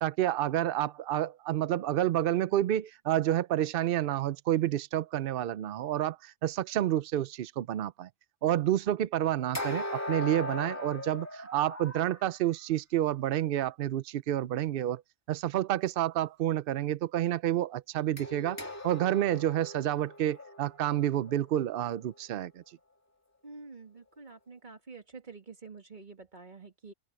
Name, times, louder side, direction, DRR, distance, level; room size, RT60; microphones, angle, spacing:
voice 1, 0.0-8.1 8.4-15.0 15.3-22.8, right 12 dB, 70° right, 0.5 m, -29 dB
sound 1, 9.5-12.2 18.2-22.2, left 1 dB, 10° left, 2.5 m, -39 dB
voice 2, 23.4-26.9, right 4 dB, 35° right, 2.3 m, -48 dB
open air
omnidirectional pair, 1.5 m